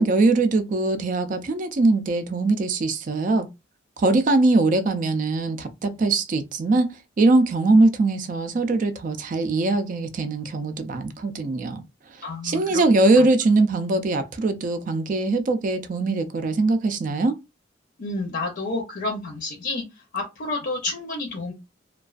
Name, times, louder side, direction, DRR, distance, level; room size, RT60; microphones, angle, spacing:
voice 1, 0.0-3.5 4.0-6.9 7.2-11.8 12.4-17.4, right 2 dB, 45° right, 0.3 m, -21 dB
voice 2, 12.2-12.8 13.2-13.3 18.0-19.8 20.1-21.5, left 2 dB, 55° left, 0.6 m, -30 dB
2.3 x 2.3 x 2.3 m
head